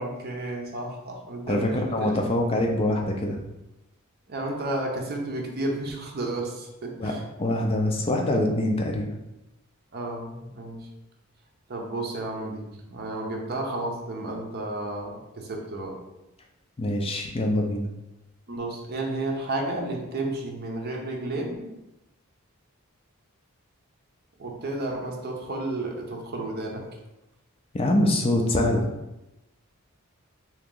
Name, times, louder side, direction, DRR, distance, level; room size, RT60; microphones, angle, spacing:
voice 1, 0.0-2.4 4.3-7.2 9.9-10.9 11.7-16.0 18.5-21.7 24.4-27.0, right 2 dB, 45° right, 1 dB, 0.7 m, -32 dB
voice 2, 1.5-3.4 7.0-7.1 7.4-9.1 16.8-17.9 27.7-28.8, left 1 dB, 25° left, 2 dB, 0.4 m, -24 dB
2.9 x 2.9 x 3.7 m, 0.95 s
head